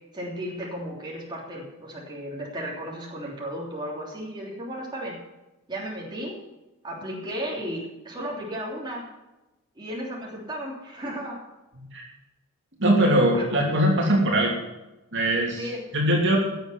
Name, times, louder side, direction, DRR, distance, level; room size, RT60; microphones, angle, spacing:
voice 1, 0.1-5.1 5.7-6.4 6.8-9.1 9.8-11.4 13.3-13.4 15.6-15.8, equal, 20° right, -3 dB, 3.2 m, -34 dB
voice 2, 12.8-14.5 15.1-15.6 15.9-16.4, right 1 dB, 55° right, -1 dB, 3.0 m, -21 dB
17.0 x 7.3 x 7.3 m, 1.0 s
head